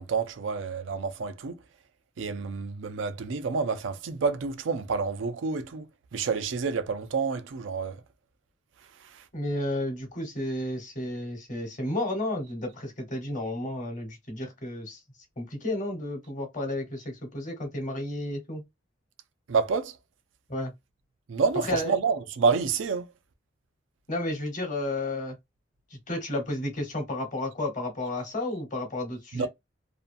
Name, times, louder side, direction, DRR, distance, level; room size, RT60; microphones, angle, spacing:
voice 1, 0.0-1.6 2.2-5.9 6.1-8.0 19.5-19.9 21.3-23.1 29.3-29.5, right 5 dB, 85° right, 0.4 m, -28 dB
voice 2, 9.3-15.0 15.4-18.6 20.5-20.7 21.6-21.9 24.1-25.4 25.9-29.5, left 1 dB, 40° left, 1.1 m, -32 dB
2.6 x 2.3 x 2.5 m
head